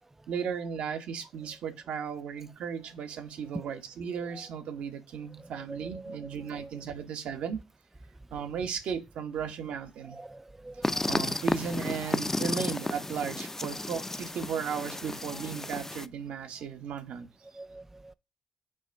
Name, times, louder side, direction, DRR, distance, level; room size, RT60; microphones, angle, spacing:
voice 1, 0.3-7.6 8.3-10.2 11.1-17.3, right 7 dB, 70° right, 1.3 m, -36 dB
voice 2, 5.7-6.2 6.5-6.7 10.1-11.1 17.5-18.1, right 2 dB, 15° right, 0.3 m, -45 dB
sound 1, 10.8-16.1, left 2 dB, 20° left, 0.6 m, -32 dB
6.2 x 3.2 x 5.2 m
hypercardioid pair, 40°, 2 cm